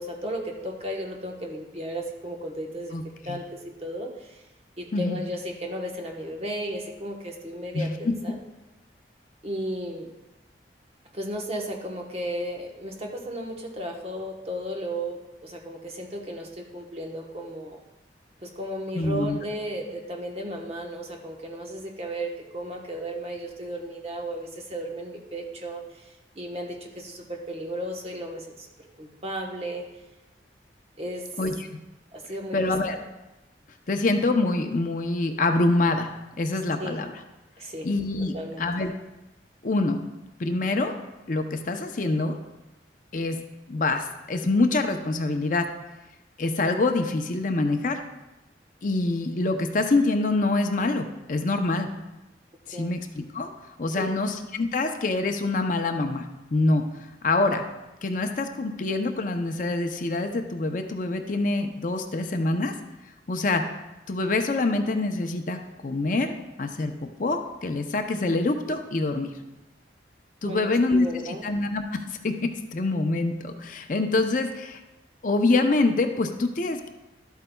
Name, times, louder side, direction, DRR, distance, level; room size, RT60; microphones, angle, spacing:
voice 1, 0.0-2.9 3.2-4.4 4.8-8.4 9.4-10.1 11.1-17.8 18.4-29.9 31.0-31.3 32.1-32.6 36.8-37.0 37.6-38.6 52.7-53.0 54.0-54.2 70.4-71.4, right 1 dB, 35° right, 1 dB, 1.1 m, -34 dB
voice 2, 2.9-3.4 4.9-5.2 7.7-8.1 18.9-19.4 31.4-31.7 32.5-33.0 33.9-36.1 36.4-37.1 37.8-38.9 39.6-40.0 40.4-40.9 41.3-42.4 43.1-43.4 43.7-45.7 46.4-48.0 48.8-51.9 52.7-53.5 53.8-56.3 56.5-56.8 57.2-57.6 58.0-62.7 63.3-63.6 64.1-66.9 67.2-69.3 70.4-71.1 71.4-74.8 75.2-76.9, left 2 dB, 45° left, 6 dB, 0.6 m, -25 dB
12.0 x 8.1 x 2.3 m, 1.0 s
head